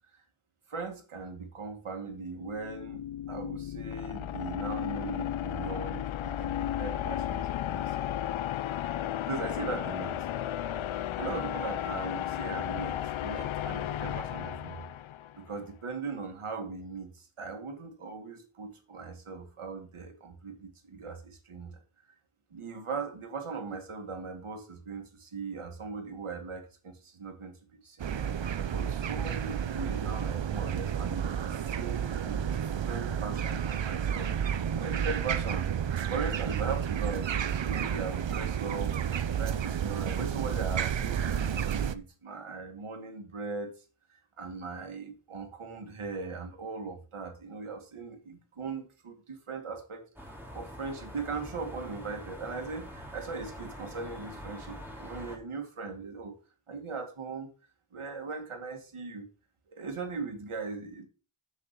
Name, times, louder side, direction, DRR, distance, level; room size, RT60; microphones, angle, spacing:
voice 1, 0.7-8.1 9.1-10.3 11.2-14.8 15.3-21.8 22.5-27.6 27.8-28.1 28.7-43.7 44.4-56.4 56.7-57.5 57.9-59.3 59.7-61.1, right 4 dB, 90° right, 4 dB, 2.3 m, -39 dB
sound 1, 2.3-15.4, left 11 dB, 75° left, 0.5 m, -34 dB
sound 2, 28.0-41.9, right 8 dB, 65° right, 0.8 m, -31 dB
sound 3, 50.2-55.4, equal, 5° right, 2.9 m, -44 dB
7.2 x 7.0 x 5.3 m, 0.36 s
wide cardioid pair, 85°, 49 cm